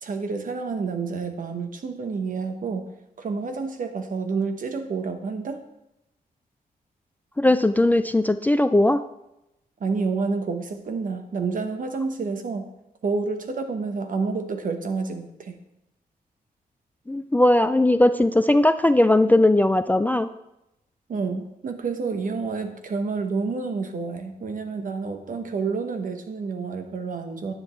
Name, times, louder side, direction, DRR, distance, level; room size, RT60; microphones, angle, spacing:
voice 1, 0.0-2.9 3.2-5.6 9.8-12.7 13.0-15.6 21.1-27.5, right 4 dB, 60° right, 7 dB, 1.1 m, -29 dB
voice 2, 7.4-9.0 17.1-20.3, left 1 dB, 10° left, 11 dB, 0.3 m, -19 dB
10.5 x 9.7 x 3.2 m, 0.87 s
wide cardioid pair, 125°, 16 cm